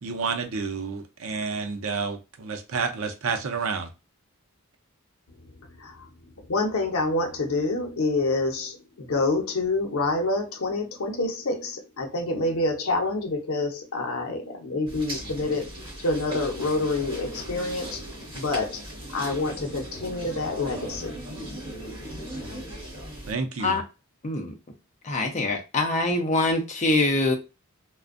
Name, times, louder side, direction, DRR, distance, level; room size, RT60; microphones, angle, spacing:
voice 1, 0.0-3.9 23.3-23.8, right 5 dB, 80° right, 0.5 m, -30 dB
voice 2, 5.5-15.7 16.0-18.0 18.3-18.8 19.1-21.2, left 2 dB, 90° left, 0.6 m, -27 dB
sound 1, 14.9-23.3, equal, 25° right, 1.3 m, -37 dB
voice 3, 24.2-24.5 25.0-27.4, left 2 dB, 35° left, 0.6 m, -24 dB
2.5 x 2.1 x 2.4 m
head